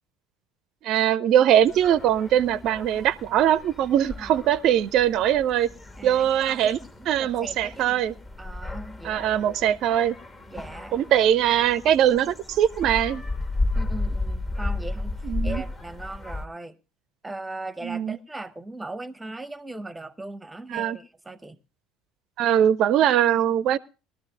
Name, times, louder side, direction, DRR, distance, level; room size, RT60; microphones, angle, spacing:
voice 1, 0.8-5.7 6.0-6.8 7.1-8.1 9.0-10.2 10.9-13.2 15.2-15.6 17.8-18.2 20.7-21.0 22.4-23.8, right 10 dB, 50° right, 0.5 m, -21 dB
sound 1, 1.6-16.5, left 2 dB, 25° left, 1.4 m, -34 dB
voice 2, 6.0-8.0 8.4-9.8 10.5-11.0 13.7-16.8 17.2-21.6, right 2 dB, 10° right, 0.8 m, -39 dB
20.5 x 13.0 x 2.3 m
figure-of-eight pair, 60°, 0 cm